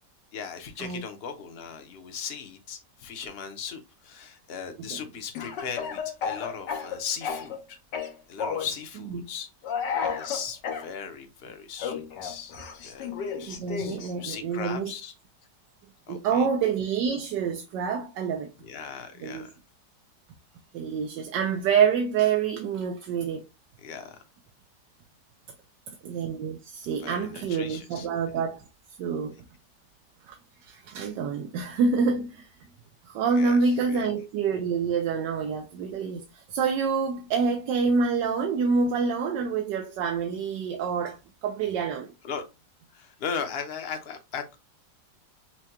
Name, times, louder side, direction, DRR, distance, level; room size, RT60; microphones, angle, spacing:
voice 1, 0.3-7.8 8.3-9.5 10.0-12.6 12.8-15.1 16.1-16.5 18.6-19.5 23.8-24.2 27.0-28.1 33.3-34.1 42.2-42.4 42.9-44.4, left 6 dB, 50° left, 0.8 m, -38 dB
Speech / Cough, 5.4-7.6 7.9-8.7 9.6-10.9 11.8-14.1, left 6 dB, 80° left, 1.5 m, -32 dB
voice 2, 13.4-14.9 16.1-18.5 19.2-19.5 20.7-23.4 26.0-28.6 29.0-29.4 30.3-30.4 30.6-32.5 33.1-42.1, right 5 dB, 85° right, 1.3 m, -27 dB
5.9 x 2.2 x 2.8 m
omnidirectional pair, 1.9 m